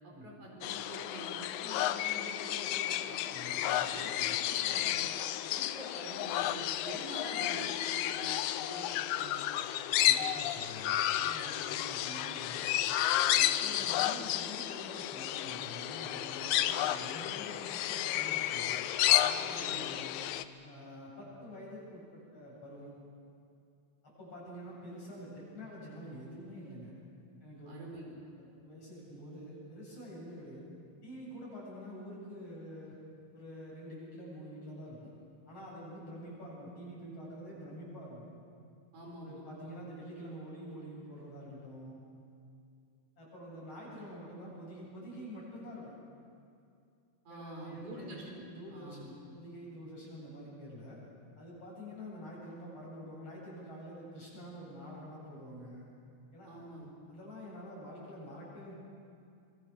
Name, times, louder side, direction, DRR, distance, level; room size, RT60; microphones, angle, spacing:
voice 1, 0.0-3.2 3.6-5.1 5.5-9.7 19.6-19.8 27.7-28.2 38.9-39.7 47.3-49.1 56.5-56.9, right 1 dB, 85° right, -1 dB, 6.2 m, -46 dB
sound 1, 0.6-20.4, left 12 dB, 85° left, 2.1 m, -32 dB
voice 2, 3.3-4.4 10.0-12.7 13.2-18.8 19.2-20.2 20.6-22.9 24.0-26.9 27.4-27.7 28.6-30.7 31.0-32.9 33.3-35.1 35.5-38.3 39.2-42.0 43.2-46.0 47.3-48.2 48.5-51.0 51.4-55.9 56.3-56.6 57.1-58.7, equal, 55° left, -5 dB, 9.1 m, -47 dB
26.0 x 22.5 x 6.4 m, 2.4 s
omnidirectional pair, 3.3 m